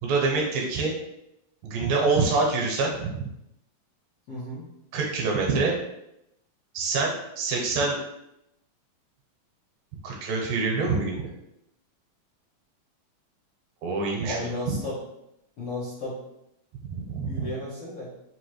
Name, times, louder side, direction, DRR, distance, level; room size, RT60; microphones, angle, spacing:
voice 1, 0.0-0.9 1.6-3.3 4.9-5.8 6.7-8.0 10.0-11.3 13.8-14.8 16.9-17.5, right 4 dB, 80° right, -1 dB, 2.6 m, -26 dB
voice 2, 4.3-4.6 14.2-15.0 15.6-16.2 17.2-18.1, left 1 dB, 75° left, -8 dB, 1.3 m, -33 dB
5.8 x 2.5 x 3.1 m, 0.83 s
omnidirectional pair, 4.1 m